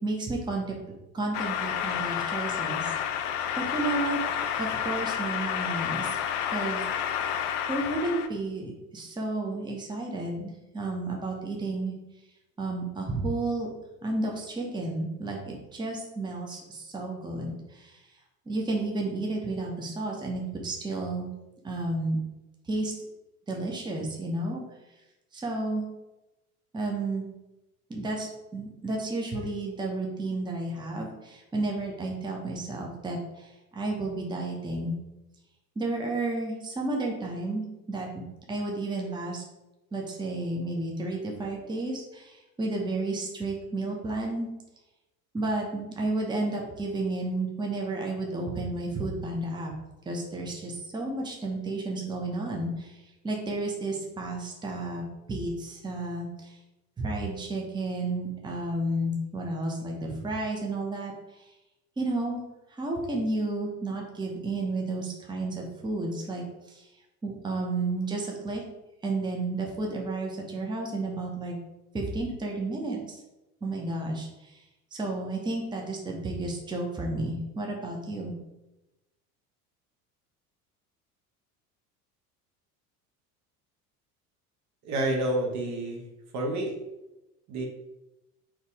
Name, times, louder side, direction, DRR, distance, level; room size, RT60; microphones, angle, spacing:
voice 1, 0.0-0.8 1.1-2.9 3.6-4.2 4.6-6.2 6.5-6.8 7.7-11.9 12.6-13.7 14.0-18.0 18.5-21.3 21.6-22.2 22.7-22.9 23.5-24.6 25.3-25.9 26.7-27.3 27.9-34.9 35.8-38.1 38.5-39.4 39.9-44.5 45.3-49.7 50.1-56.6 57.0-61.5 62.0-62.4 62.8-66.9 67.2-68.6 69.0-71.6 71.9-73.2 73.6-74.6 74.9-78.3, right 2 dB, 10° right, 0 dB, 0.8 m, -32 dB
sound 1, 1.3-8.3, left 9 dB, 55° left, 0.5 m, -30 dB
voice 2, 84.8-86.8 87.5-87.7, right 1 dB, 40° right, 1 dB, 0.9 m, -29 dB
4.0 x 2.9 x 3.5 m, 0.98 s
figure-of-eight pair, 65°, 45 cm